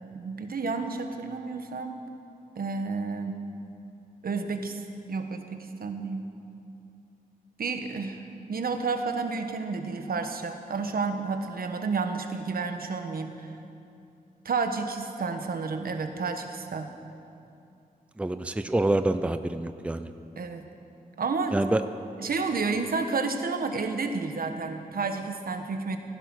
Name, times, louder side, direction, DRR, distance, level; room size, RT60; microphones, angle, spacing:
voice 1, 0.1-2.0 2.6-3.4 4.2-4.8 5.1-6.3 7.6-8.2 8.5-13.5 14.4-16.9 20.4-20.7 21.2-21.6 22.2-26.0, right 4 dB, 80° right, 6 dB, 1.3 m, -31 dB
voice 2, 18.2-20.1 21.5-21.8, right 2 dB, 10° right, 10 dB, 0.5 m, -26 dB
16.0 x 14.5 x 6.2 m, 2.6 s
wide cardioid pair, 140°, 15 cm